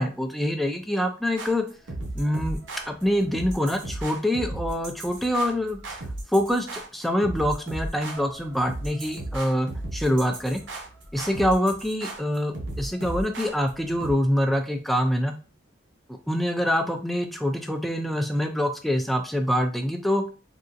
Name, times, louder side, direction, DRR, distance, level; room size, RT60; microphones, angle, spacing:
voice 1, 0.0-1.7 2.2-2.6 2.9-5.8 6.3-6.7 6.9-10.6 11.1-15.3 16.3-20.2, equal, ahead, 4 dB, 0.3 m, -25 dB
sound 1, 1.4-14.1, right 1 dB, 75° right, 0.8 m, -35 dB
3.7 x 2.4 x 2.5 m, 0.36 s
head